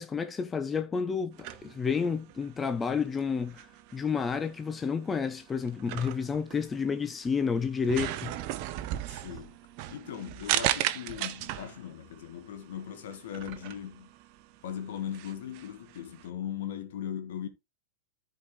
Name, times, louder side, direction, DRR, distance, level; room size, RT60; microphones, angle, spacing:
voice 1, 0.0-8.3, left 6 dB, 15° left, 0.6 m, -30 dB
sound 1, 1.3-16.3, right 13 dB, 45° right, 0.7 m, -37 dB
voice 2, 9.1-9.6 9.9-14.1 14.6-17.5, left 10 dB, 60° left, 1.5 m, -39 dB
13.5 x 4.6 x 3.2 m
figure-of-eight pair, 95°, 0 cm